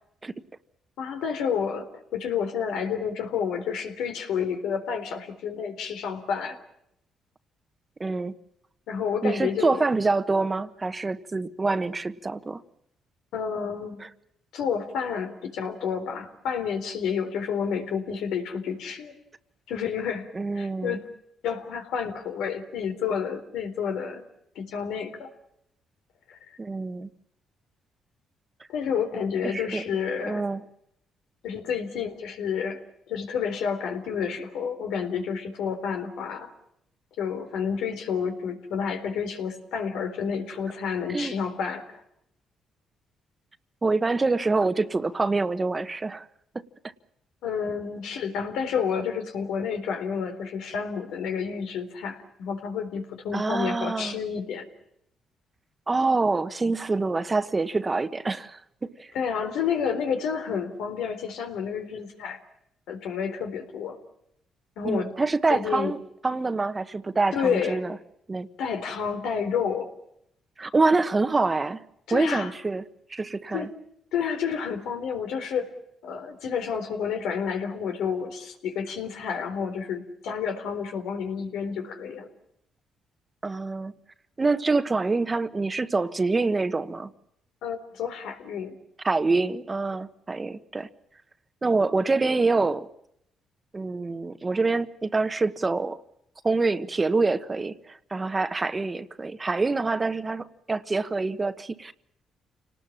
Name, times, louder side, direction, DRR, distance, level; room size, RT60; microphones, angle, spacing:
voice 1, 1.0-6.6 8.9-9.8 13.3-14.0 14.5-19.1 19.7-20.3 20.5-21.0 21.4-24.2 24.6-25.3 26.3-26.6 28.7-30.4 31.4-32.8 33.1-36.5 37.2-41.9 47.4-54.7 59.1-62.4 62.9-64.0 64.8-65.1 65.5-65.9 67.3-67.8 68.6-69.9 72.1-72.5 73.5-73.7 74.1-75.7 76.0-82.3 87.6-88.8, left 7 dB, 85° left, 3.7 m, -30 dB
voice 2, 8.0-8.3 9.2-12.6 14.0-14.1 20.3-21.0 26.6-27.1 29.5-29.8 30.2-30.6 41.1-41.3 43.8-46.2 53.3-54.2 55.9-59.1 64.8-68.0 68.3-68.5 70.6-71.8 72.1-72.8 73.1-73.7 83.4-83.9 84.4-87.1 89.0-90.9 91.6-92.9 93.7-96.0 96.4-101.9, right 3 dB, 25° right, 1.3 m, -26 dB
29.0 x 19.0 x 7.4 m
cardioid pair, 90°, 0 cm